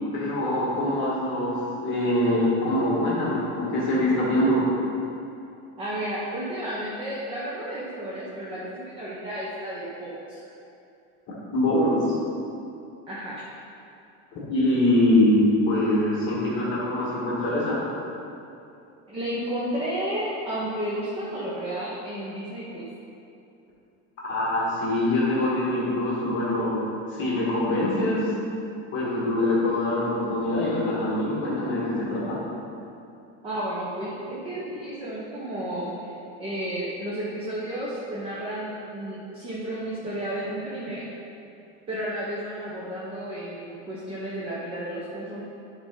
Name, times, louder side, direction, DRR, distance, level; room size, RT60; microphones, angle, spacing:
voice 1, 0.1-4.6 11.5-12.1 14.3-17.8 24.2-28.3 28.9-32.4, left 1 dB, 35° left, -7 dB, 1.5 m, -24 dB
voice 2, 5.8-10.5 13.1-13.5 19.1-22.8 33.4-36.1 36.4-41.1 41.9-45.4, right 1 dB, 15° right, -7 dB, 0.7 m, -32 dB
10.5 x 4.1 x 3.6 m, 2.7 s
cardioid pair, 175°, 34 cm